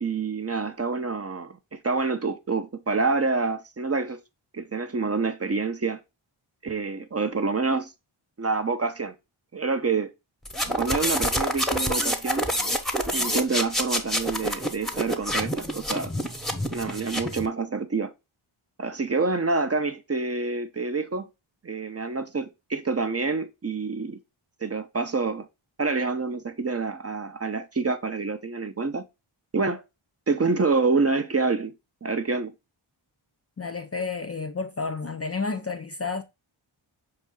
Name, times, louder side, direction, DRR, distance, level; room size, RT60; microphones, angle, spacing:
voice 1, 0.0-4.2 4.5-6.0 6.6-7.9 8.4-9.1 9.5-10.1 10.8-12.5 13.1-16.1 16.7-18.1 18.8-21.3 21.6-24.2 24.6-25.5 25.8-29.0 29.5-29.8 30.3-31.7 32.0-32.5, right 4 dB, 30° right, 0.5 m, -27 dB
sound 1, 10.4-17.5, equal, ahead, 0.8 m, -27 dB
voice 2, 33.6-36.2, left 4 dB, 30° left, 0.4 m, -31 dB
5.4 x 2.5 x 3.6 m
wide cardioid pair, 60°, 50 cm